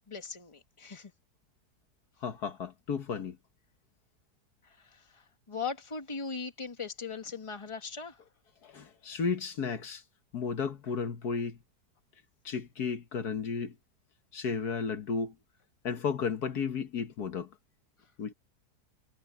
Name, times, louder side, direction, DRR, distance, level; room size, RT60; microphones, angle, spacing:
voice 1, 0.1-1.1 4.6-8.2, left 5 dB, 20° left, 1.7 m, -39 dB
voice 2, 2.2-3.4 8.6-10.0 10.3-11.6 12.5-13.8 14.3-15.3 15.8-17.5 18.2-18.3, left 6 dB, 70° left, 1.8 m, -33 dB
omnidirectional pair, 1.8 m